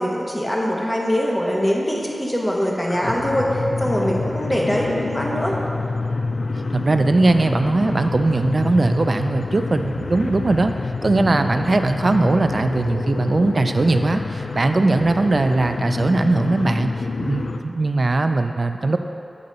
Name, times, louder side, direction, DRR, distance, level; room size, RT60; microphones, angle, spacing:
voice 1, 0.0-5.6, equal, 15° left, -2 dB, 1.1 m, -22 dB
sound 1, 2.9-17.6, left 3 dB, 75° left, 0.3 m, -27 dB
voice 2, 6.7-10.7 11.0-16.9 17.2-19.0, right 2 dB, 50° right, 7 dB, 0.4 m, -19 dB
8.4 x 3.9 x 5.3 m, 2.8 s
wide cardioid pair, 80°, 0 cm